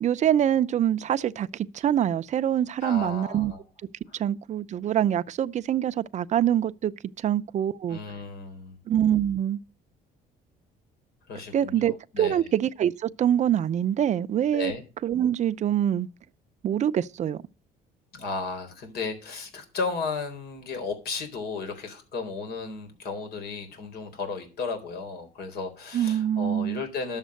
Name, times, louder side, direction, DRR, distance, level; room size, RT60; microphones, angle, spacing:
voice 1, 0.0-3.5 4.2-6.9 7.2-8.0 8.9-9.6 11.5-14.7 15.0-16.1 16.6-17.4 25.9-26.8, right 10 dB, 45° right, 0.6 m, -25 dB
voice 2, 2.8-3.6 4.1-4.2 7.9-8.8 11.3-12.5 14.5-14.8 18.1-27.2, left 4 dB, 70° left, 3.9 m, -34 dB
11.5 x 7.3 x 6.5 m
cardioid pair, 110°, 17 cm